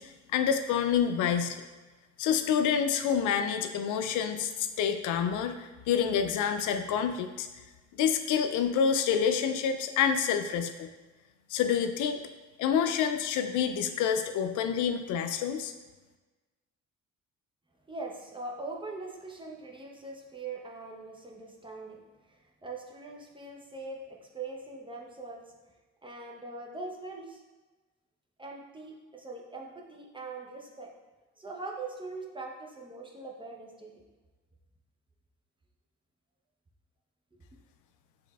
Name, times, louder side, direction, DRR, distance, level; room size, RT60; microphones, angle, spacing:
voice 1, 0.0-1.6 2.2-7.5 7.9-10.9 11.5-12.2 12.6-15.7, left 7 dB, 80° left, 8 dB, 0.5 m, -28 dB
voice 2, 17.9-22.0 22.3-25.5 26.0-27.4 28.4-30.9 31.4-34.0, right 3 dB, 15° right, -1 dB, 0.8 m, -42 dB
6.6 x 3.4 x 2.3 m, 1.2 s
cardioid pair, 90°, 30 cm